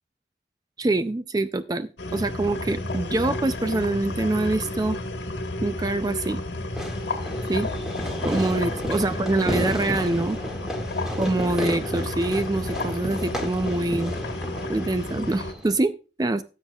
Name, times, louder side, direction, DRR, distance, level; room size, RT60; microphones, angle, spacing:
voice 1, 0.8-5.0 5.6-6.4 7.5-7.7 8.2-10.4 11.2-14.1 14.7-16.4, right 2 dB, 20° right, 11 dB, 0.4 m, -25 dB
sound 1, 2.0-15.5, left 2 dB, 85° left, 1.4 m, -31 dB
Fireworks, 6.7-15.8, equal, 5° right, 1.9 m, -33 dB
17.5 x 7.4 x 2.3 m, 0.33 s
head